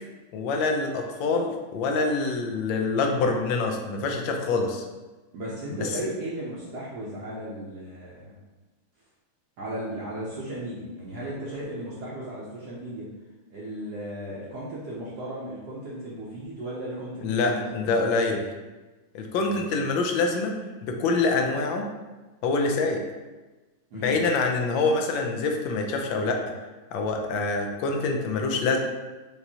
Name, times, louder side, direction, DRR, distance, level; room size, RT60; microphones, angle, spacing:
voice 1, 0.3-4.8 6.0-6.1 17.2-18.5 19.1-20.6 20.8-21.9 22.4-23.0 23.9-26.4 26.9-28.8, left 3 dB, 75° left, 3 dB, 1.2 m, -25 dB
voice 2, 5.3-8.3 9.6-13.1 13.5-17.8 19.4-19.6 23.9-24.2, right 1 dB, 65° right, -6 dB, 1.1 m, -35 dB
5.2 x 3.0 x 2.7 m, 1.2 s
omnidirectional pair, 2.3 m